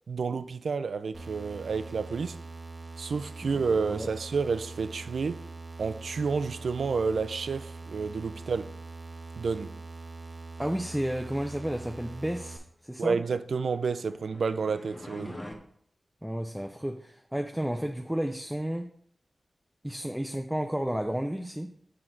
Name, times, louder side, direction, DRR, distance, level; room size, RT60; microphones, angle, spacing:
voice 1, 0.1-2.4 3.0-5.4 5.8-8.7 9.4-9.7 13.0-15.4, right 5 dB, 80° right, 0.3 m, -30 dB
sound 1, 1.1-12.6, right 3 dB, 35° right, 0.7 m, -43 dB
voice 2, 3.7-4.1 10.6-13.2 16.2-18.9 19.8-21.7, equal, 5° right, 0.4 m, -32 dB
sound 2, 13.6-15.6, left 1 dB, 20° left, 0.8 m, -44 dB
6.0 x 3.8 x 4.4 m
wide cardioid pair, 90°, 0 cm